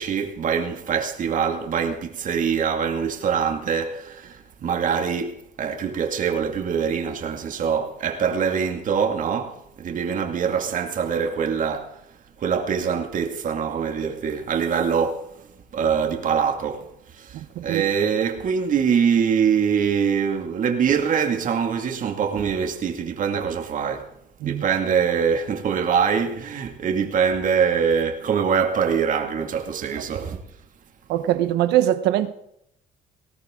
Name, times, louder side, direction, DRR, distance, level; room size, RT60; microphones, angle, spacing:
voice 1, 0.0-12.0 12.4-15.3 15.7-24.1 24.4-30.4, right 7 dB, 50° right, 2.3 m, -24 dB
voice 2, 17.3-17.8 24.4-24.6 31.1-32.3, right 12 dB, 85° right, 1.1 m, -22 dB
19.5 x 17.0 x 3.8 m
cardioid pair, 110°, 17 cm